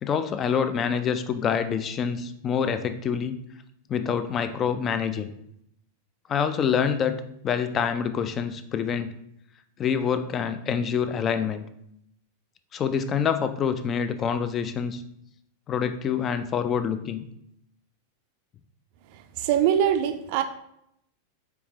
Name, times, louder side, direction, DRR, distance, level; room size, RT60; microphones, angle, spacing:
voice 1, 0.0-3.4 3.9-5.3 6.3-7.2 7.4-9.1 9.8-11.6 12.7-15.0 15.7-17.2, left 7 dB, 25° left, 10 dB, 0.3 m, -26 dB
voice 2, 19.4-20.4, right 9 dB, 45° right, 8 dB, 0.4 m, -22 dB
4.6 x 3.5 x 2.9 m, 0.75 s
figure-of-eight pair, 90°, 0 cm